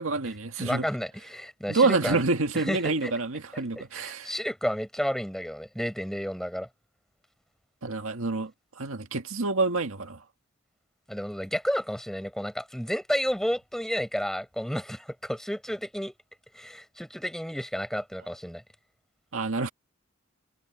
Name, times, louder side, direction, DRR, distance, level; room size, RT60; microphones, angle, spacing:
voice 1, 0.0-0.8 1.7-4.3 7.8-8.5 8.8-10.2 19.3-19.7, right 3 dB, 80° right, 1.8 m, -27 dB
voice 2, 0.6-2.2 2.5-3.1 3.8-6.7 11.1-16.1 16.5-18.6, equal, ahead, 8.0 m, -31 dB
head